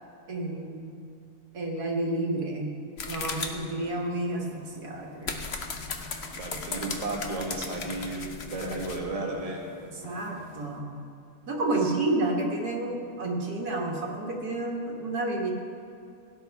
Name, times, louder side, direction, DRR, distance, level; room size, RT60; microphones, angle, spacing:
voice 1, 0.3-0.9 1.5-2.7 3.1-5.4 9.9-11.0 11.5-15.5, right 2 dB, 75° right, -1 dB, 1.9 m, -30 dB
sound 1, 3.0-10.8, left 4 dB, 50° left, 1.0 m, -38 dB
voice 2, 6.4-9.6 11.8-11.9, right 2 dB, 25° right, -2 dB, 1.6 m, -33 dB
16.5 x 10.5 x 3.5 m, 2.6 s
omnidirectional pair, 1.7 m